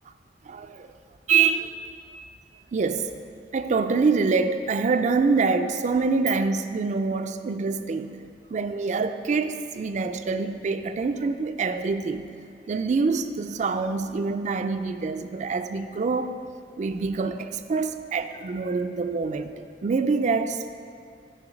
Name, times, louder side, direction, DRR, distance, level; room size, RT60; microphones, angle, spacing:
voice 1, 1.3-2.0 2.7-3.1 3.5-8.1 8.5-12.3 12.7-16.3 16.8-20.7, right 4 dB, 40° right, 9 dB, 0.4 m, -25 dB
9.7 x 5.0 x 5.0 m, 2.3 s
head